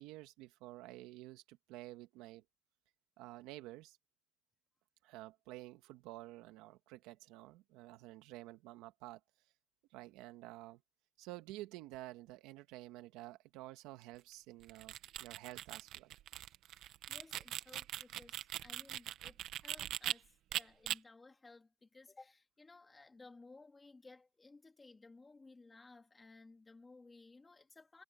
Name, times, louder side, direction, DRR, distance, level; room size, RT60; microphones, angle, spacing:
voice 1, 0.0-2.4 3.2-4.0 5.0-9.2 9.9-10.8 11.2-16.1, right 17 dB, 85° right, 2.0 m, -51 dB
sound 1, 14.6-20.1 20.5-21.0, right 13 dB, 70° right, 1.2 m, -41 dB
voice 2, 17.1-28.0, left 3 dB, 20° left, 3.1 m, -59 dB
cardioid pair, 110°, 0 cm